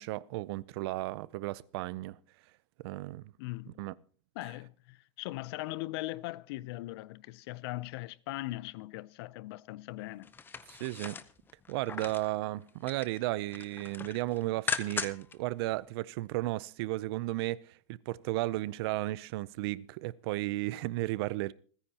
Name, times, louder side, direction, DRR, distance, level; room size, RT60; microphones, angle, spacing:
voice 1, 0.0-2.2 2.8-3.3 3.8-3.9 10.7-11.1 11.7-21.5, right 18 dB, 50° right, 0.5 m, -34 dB
voice 2, 3.4-3.8 4.4-10.3, left 18 dB, 50° left, 0.5 m, -40 dB
sound 1, 10.2-12.3 12.7-13.2 13.5-15.3 15.7-15.8, left 5 dB, 10° left, 0.7 m, -38 dB
27.5 x 10.0 x 2.9 m
supercardioid pair, 145°, 17 cm